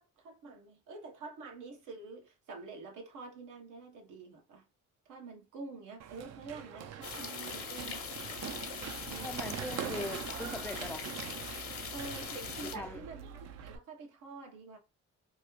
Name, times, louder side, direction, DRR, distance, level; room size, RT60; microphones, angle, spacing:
voice 1, 0.0-4.7 5.0-8.1 9.0-9.4 11.9-14.8, right 3 dB, 85° right, 1.1 m, -47 dB
Run, 6.0-13.8, right 9 dB, 60° right, 0.5 m, -43 dB
sound 1, 7.0-12.8, left 6 dB, 50° left, 0.8 m, -42 dB
voice 2, 9.2-11.1 12.6-13.0, left 2 dB, 5° left, 0.3 m, -41 dB
3.0 x 2.4 x 3.0 m
cardioid pair, 90°, 30 cm